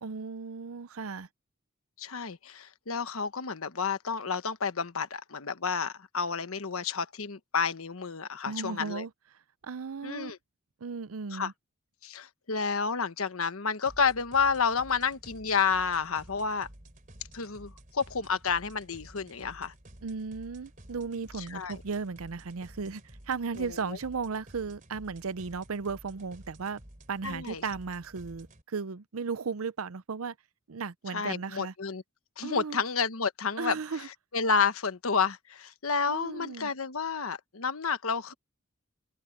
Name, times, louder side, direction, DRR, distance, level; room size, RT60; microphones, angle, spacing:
voice 1, 0.0-1.3 8.4-9.1 9.6-10.3 10.8-11.5 20.0-26.8 27.1-30.3 30.7-31.7 32.4-32.8 33.6-34.1 36.1-36.7, right 5 dB, 85° right, 0.6 m, -35 dB
voice 2, 2.0-9.1 10.0-10.4 11.3-11.5 12.0-16.7 17.3-19.7 21.4-21.8 23.6-23.8 27.2-27.6 31.1-32.0 32.4-33.8 34.3-38.3, left 5 dB, 85° left, 1.2 m, -30 dB
sound 1, 13.9-28.6, right 1 dB, 40° right, 3.6 m, -52 dB
head